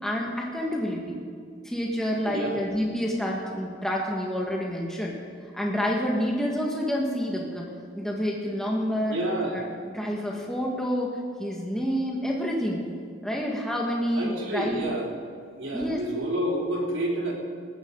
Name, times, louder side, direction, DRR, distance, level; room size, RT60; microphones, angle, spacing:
voice 1, 0.0-1.2 1.6-5.2 5.5-7.6 7.9-9.2 9.5-12.8 13.2-14.9 15.7-16.0, equal, 5° left, -2 dB, 1.7 m, -28 dB
voice 2, 2.2-2.6 9.1-9.7 14.1-15.1 15.5-17.3, right 1 dB, 80° right, -2 dB, 3.5 m, -29 dB
19.5 x 15.5 x 4.0 m, 2.2 s
head